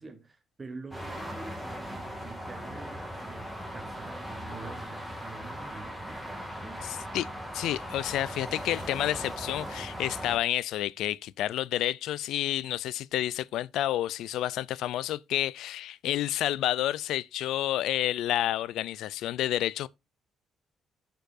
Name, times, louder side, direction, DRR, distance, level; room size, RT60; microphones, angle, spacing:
voice 1, 0.0-6.8, right 3 dB, 30° right, 0.9 m, -46 dB
sound 1, 0.9-10.4, equal, ahead, 2.0 m, -39 dB
voice 2, 6.8-7.3 7.5-19.9, left 13 dB, 85° left, 0.3 m, -30 dB
12.5 x 4.5 x 2.5 m
cardioid pair, 90°, 0 cm